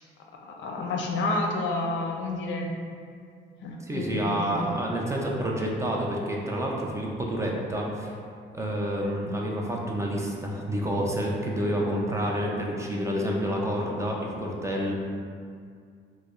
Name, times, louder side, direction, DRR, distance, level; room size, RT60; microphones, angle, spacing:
voice 1, 0.4-2.7 3.6-4.7, left 2 dB, 70° left, 1 dB, 0.5 m, -30 dB
voice 2, 3.8-8.2 8.5-14.9, equal, 15° right, -2 dB, 0.4 m, -29 dB
4.9 x 2.1 x 2.4 m, 2.2 s
cardioid pair, 90°, 20 cm